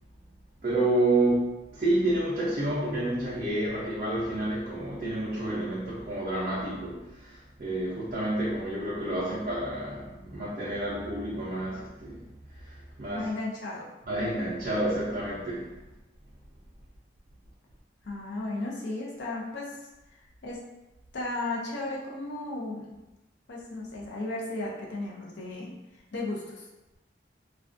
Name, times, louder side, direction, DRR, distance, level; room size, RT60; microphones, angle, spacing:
voice 1, 0.6-12.3 12.6-13.3 14.1-15.7, right 1 dB, 40° right, -8 dB, 0.5 m, -29 dB
voice 2, 13.1-13.9 18.0-19.8 20.4-20.6 21.1-23.0 23.5-25.7 26.1-26.6, left 2 dB, 70° left, -4 dB, 0.5 m, -34 dB
2.3 x 2.3 x 2.4 m, 1.0 s
head